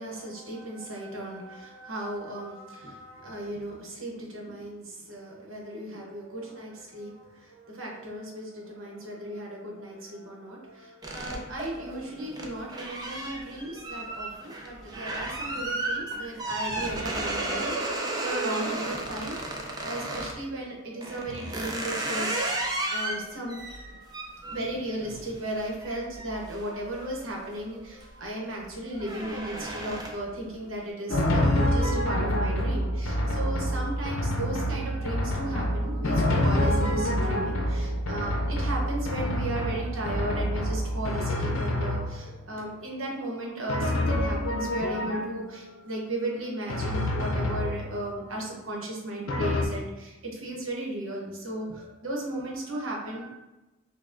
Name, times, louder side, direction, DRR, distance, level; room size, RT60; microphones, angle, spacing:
voice 1, 0.0-53.3, right 1 dB, 80° right, -2 dB, 1.0 m, -36 dB
sound 1, 11.0-20.4 21.0-27.4 27.8-28.2 28.5-30.4, right 2 dB, 20° right, 0.4 m, -34 dB
Drum, 31.1-42.5 43.7-45.7 46.7-48.2 49.3-49.7, left 1 dB, 85° left, 0.6 m, -27 dB
5.4 x 2.2 x 2.5 m, 1.0 s
head